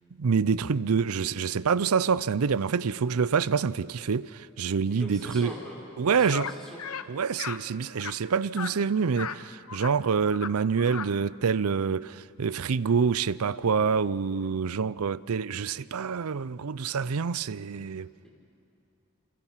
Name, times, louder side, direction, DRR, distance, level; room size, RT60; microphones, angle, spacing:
voice 1, 0.2-5.5 6.0-6.5 7.1-18.1, right 6 dB, 85° right, 0.5 m, -26 dB
voice 2, 4.9-5.8 6.1-6.8, equal, 5° left, 6.1 m, -40 dB
sound 1, 6.3-6.5 6.8-7.1 7.4-7.6 8.0-8.1 8.6-8.7 9.1-9.4 9.7-9.9 10.2-10.5 10.8-11.1, left 7 dB, 85° left, 0.9 m, -35 dB
29.0 x 27.0 x 5.8 m
head